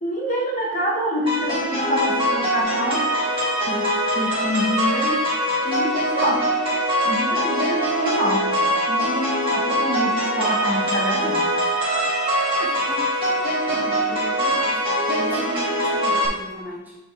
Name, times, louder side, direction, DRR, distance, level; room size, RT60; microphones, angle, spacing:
voice 1, 0.0-3.1 3.6-5.2 5.6-6.5 7.0-11.5, equal, 40° left, -3 dB, 1.3 m, -26 dB
sound 1, 1.3-16.3, equal, 25° right, 2.0 m, -23 dB
sound 2, 5.8-13.3, right 4 dB, 65° left, 1.3 m, -33 dB
voice 2, 12.6-13.1 13.7-14.8 15.1-17.0, equal, 10° right, -6 dB, 1.6 m, -36 dB
7.7 x 4.2 x 3.4 m, 1.1 s
head